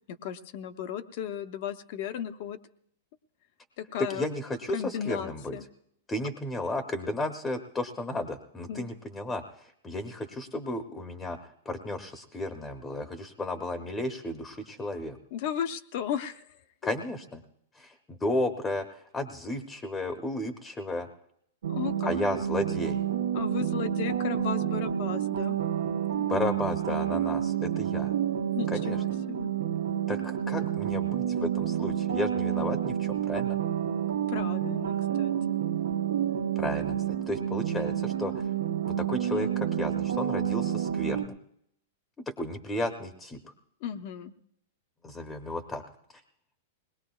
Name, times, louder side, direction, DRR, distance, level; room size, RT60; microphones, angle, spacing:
voice 1, 0.1-2.6 3.8-4.3 4.7-5.6 8.7-8.9 15.3-16.4 21.7-22.2 23.3-25.6 26.2-26.4 28.5-29.5 34.3-35.6 43.8-44.3, left 9 dB, 50° left, 11 dB, 0.7 m, -35 dB
voice 2, 4.0-5.6 6.1-15.2 16.8-17.4 17.7-21.1 22.0-23.0 26.3-28.1 28.7-29.0 30.1-33.6 36.5-38.5 38.8-41.4 42.3-43.5 45.0-45.8, left 2 dB, 10° left, 6 dB, 0.7 m, -33 dB
sound 1, 21.6-41.2, right 10 dB, 85° right, 0.9 m, -29 dB
21.5 x 19.0 x 2.3 m, 0.73 s
supercardioid pair, 150°, 0 cm